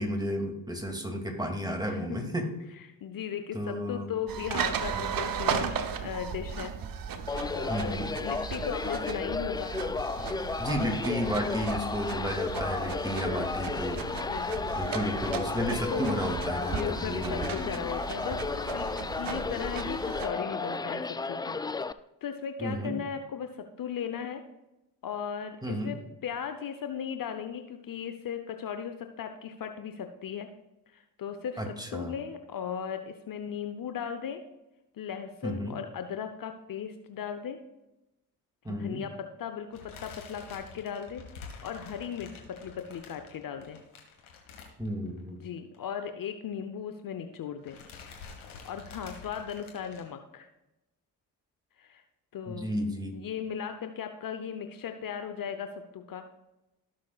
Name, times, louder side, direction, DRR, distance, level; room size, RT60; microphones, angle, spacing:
voice 1, 0.0-2.5 3.5-4.1 7.7-8.1 10.6-14.4 14.7-17.5 22.6-23.0 25.6-25.9 31.6-32.1 35.4-35.8 38.6-39.0 44.8-45.5 52.5-53.2, equal, 10° right, 3 dB, 2.5 m, -32 dB
voice 2, 1.8-2.2 3.0-6.8 7.5-9.8 13.3-13.5 14.1-14.8 15.9-16.1 16.6-21.6 22.2-24.4 25.0-30.5 30.9-34.4 34.9-37.6 38.7-43.8 45.4-47.8 48.6-50.5 51.8-52.0 52.3-52.7 53.1-56.3, left 7 dB, 50° left, 7 dB, 0.9 m, -37 dB
sound 1, 4.3-20.3, right 6 dB, 50° right, 1.0 m, -36 dB
sound 2, 7.3-21.9, left 4 dB, 10° left, 0.3 m, -33 dB
sound 3, 39.7-45.3 45.6-45.8 46.0-46.1 47.1-47.4 47.6-50.0, left 5 dB, 90° left, 1.6 m, -48 dB
16.0 x 6.3 x 2.4 m, 0.97 s
hypercardioid pair, 45°, 43 cm